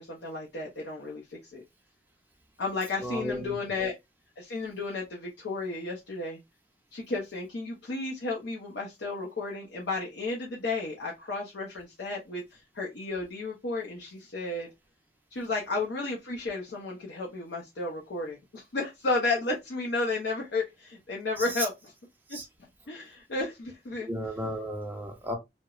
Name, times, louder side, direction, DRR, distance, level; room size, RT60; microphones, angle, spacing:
voice 1, 0.0-1.6 2.6-3.9 4.4-6.4 6.9-14.7 15.3-21.7 22.3-22.4 22.9-24.1, left 3 dB, 75° left, 0.6 m, -33 dB
voice 2, 3.0-3.5 22.3-22.5 24.1-25.3, equal, 10° right, 0.6 m, -34 dB
2.9 x 2.1 x 2.3 m
head